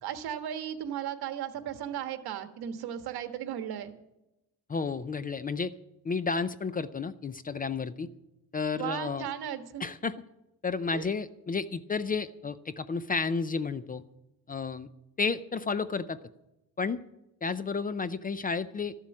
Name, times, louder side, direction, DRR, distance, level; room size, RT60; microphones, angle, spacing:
voice 1, 0.0-3.9 8.7-9.9 10.9-11.1, right 10 dB, 75° right, 8 dB, 1.5 m, -36 dB
voice 2, 4.7-5.7 6.0-8.1 8.5-9.3 9.8-10.2 10.6-14.0 14.5-14.9 15.2-16.2 16.8-17.0 17.4-19.0, left 4 dB, 25° left, 14 dB, 0.4 m, -31 dB
13.5 x 7.4 x 9.7 m, 0.91 s
cardioid pair, 135°, 38 cm